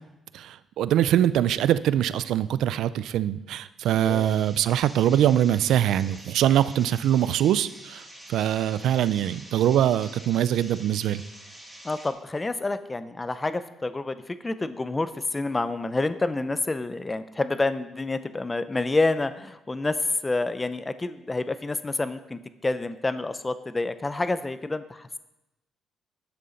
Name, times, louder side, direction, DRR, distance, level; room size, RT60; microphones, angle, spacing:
voice 1, 0.3-11.2, right 11 dB, 80° right, 16 dB, 0.4 m, -23 dB
sound 1, 3.8-12.1, equal, 5° right, 2.2 m, -46 dB
voice 2, 3.9-4.4 11.8-25.2, left 2 dB, 20° left, 12 dB, 0.5 m, -28 dB
11.0 x 6.8 x 5.1 m, 0.95 s
cardioid pair, 90°, 0 cm